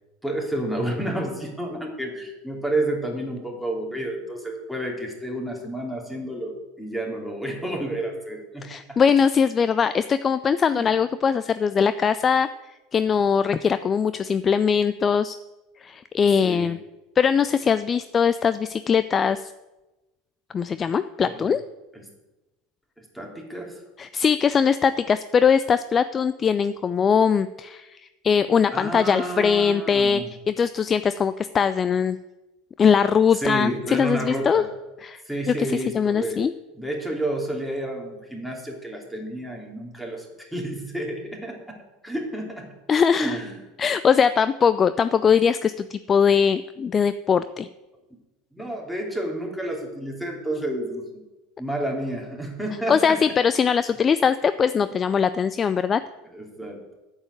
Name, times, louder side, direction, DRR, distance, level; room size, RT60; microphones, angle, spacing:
voice 1, 0.2-9.0 10.7-10.9 16.4-16.7 21.3-21.5 23.0-23.8 28.7-30.3 33.3-34.7 35.2-36.4 36.8-41.8 42.0-42.8 43.2-43.5 48.5-51.0 51.6-53.2 56.3-56.8, right 1 dB, ahead, 0 dB, 2.9 m, -30 dB
voice 2, 8.6-15.4 15.8-16.8 17.2-19.5 20.5-21.6 24.0-30.2 30.5-32.2 32.8-34.6 35.0-36.5 42.9-43.4 43.8-47.7 52.9-56.0, left 6 dB, 25° left, 13 dB, 0.3 m, -21 dB
8.7 x 7.3 x 7.9 m, 1.1 s
figure-of-eight pair, 75°, 0 cm